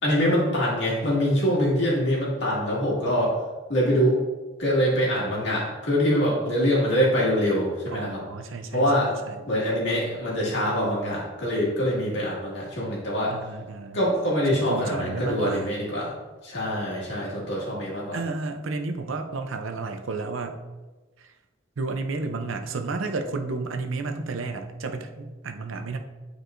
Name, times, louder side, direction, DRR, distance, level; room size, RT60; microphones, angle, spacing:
voice 1, 0.0-3.3 3.7-4.2 4.6-8.2 8.7-9.1 9.5-13.3 13.9-16.1 16.4-18.2, equal, 60° left, -5 dB, 2.1 m, -24 dB
voice 2, 7.9-9.4 13.3-14.0 14.5-15.7 18.1-20.6 21.2-21.3 21.8-26.0, right 3 dB, 85° right, 6 dB, 0.6 m, -32 dB
9.0 x 4.6 x 2.6 m, 1.2 s
head